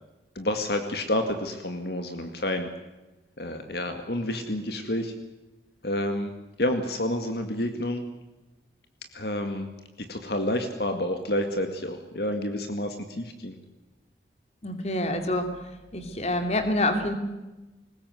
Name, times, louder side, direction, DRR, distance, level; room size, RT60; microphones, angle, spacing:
voice 1, 0.4-2.7 3.4-5.1 5.8-6.3 6.6-8.0 9.1-9.7 10.1-13.6, left 1 dB, 65° left, 6 dB, 2.2 m, -29 dB
voice 2, 14.6-15.5 15.9-17.1, left 1 dB, 35° left, 7 dB, 2.8 m, -26 dB
22.5 x 20.0 x 8.0 m, 1.1 s
head